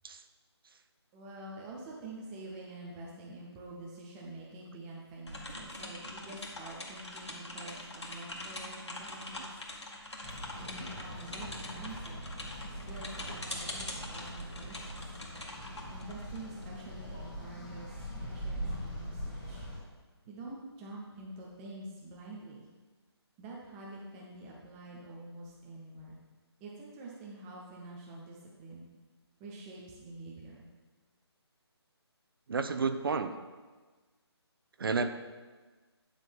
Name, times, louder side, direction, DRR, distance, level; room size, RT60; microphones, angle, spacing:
voice 1, 1.1-9.5 10.6-12.2 12.9-14.9 15.9-19.7 20.3-22.7 23.4-26.2 26.6-28.9 29.4-30.7, right 2 dB, 5° right, -4 dB, 0.3 m, -47 dB
sound 1, 5.3-16.8, left 1 dB, 90° left, 1.9 m, -43 dB
sound 2, 10.2-19.8, equal, 15° left, 2.3 m, -42 dB
voice 2, 32.5-33.3 34.8-35.1, right 4 dB, 55° right, 9 dB, 0.6 m, -30 dB
10.0 x 3.8 x 6.0 m, 1.3 s
figure-of-eight pair, 155°, 14 cm